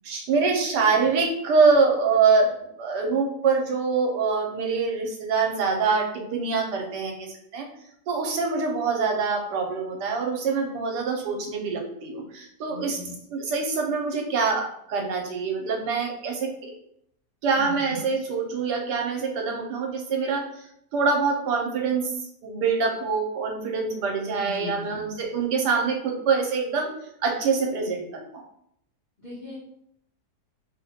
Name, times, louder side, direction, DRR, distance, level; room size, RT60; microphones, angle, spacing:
voice 1, 0.0-7.7 8.1-13.0 13.3-16.7 17.4-20.4 20.9-22.1 22.4-26.9 27.2-28.1 28.3-28.4, right 4 dB, 85° right, 2 dB, 1.3 m, -25 dB
voice 2, 12.7-13.1 17.5-18.0 24.4-25.0 29.2-29.6, left 1 dB, 45° left, -8 dB, 0.6 m, -38 dB
2.8 x 2.1 x 4.1 m, 0.74 s
omnidirectional pair, 1.8 m